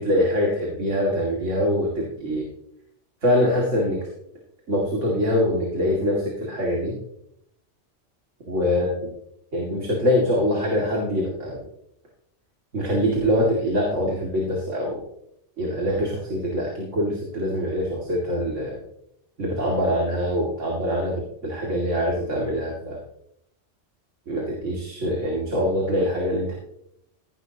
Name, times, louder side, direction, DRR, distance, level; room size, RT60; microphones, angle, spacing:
voice 1, 0.0-2.5 3.2-4.0 4.7-6.9 8.5-8.9 9.5-11.6 12.7-15.0 15.6-18.8 19.4-23.0 24.3-26.5, equal, 85° right, -2 dB, 2.8 m, -24 dB
16.5 x 11.0 x 2.9 m, 0.74 s
omnidirectional pair, 1.2 m